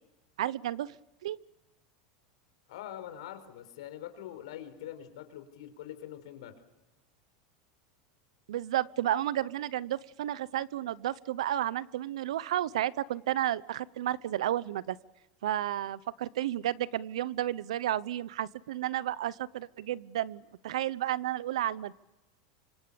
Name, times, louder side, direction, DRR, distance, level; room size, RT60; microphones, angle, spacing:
voice 1, 0.4-0.9 1.2-1.4 8.5-15.0 15.4-21.9, right 12 dB, 90° right, 19 dB, 0.9 m, -32 dB
voice 2, 2.7-6.5, left 11 dB, 80° left, 8 dB, 4.7 m, -44 dB
26.5 x 25.5 x 7.1 m, 1.0 s
supercardioid pair, 130°, 3 cm